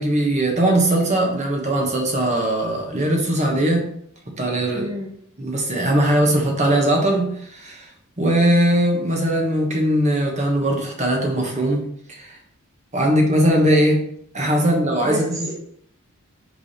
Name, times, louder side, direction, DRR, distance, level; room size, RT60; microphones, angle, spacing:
voice 1, 0.0-3.9 4.4-4.9 5.4-7.9 8.2-11.8 12.1-12.4 12.9-14.0 14.3-15.5, right 1 dB, 30° right, 1 dB, 1.3 m, -20 dB
voice 2, 4.7-5.1 15.0-15.5, right 1 dB, 15° right, 0 dB, 0.5 m, -29 dB
5.1 x 4.8 x 4.3 m, 0.69 s
head